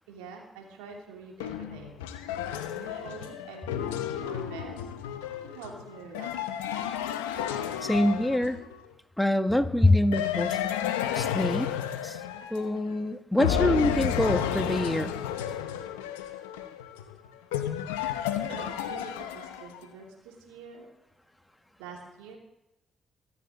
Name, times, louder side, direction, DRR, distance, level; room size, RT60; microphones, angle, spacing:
voice 1, 0.1-1.9 2.8-4.8 5.5-6.3 18.4-20.9 21.8-22.4, right 5 dB, 85° right, 0 dB, 3.0 m, -45 dB
sound 1, 1.4-8.8 10.1-13.0 13.4-19.8, left 10 dB, 90° left, 0.8 m, -32 dB
voice 2, 7.8-8.6 9.2-10.6 11.1-11.7 12.0-12.2 12.5-15.1, left 1 dB, 5° left, 7 dB, 1.6 m, -25 dB
24.5 x 9.7 x 4.0 m, 0.89 s
hypercardioid pair, 45°, 0 cm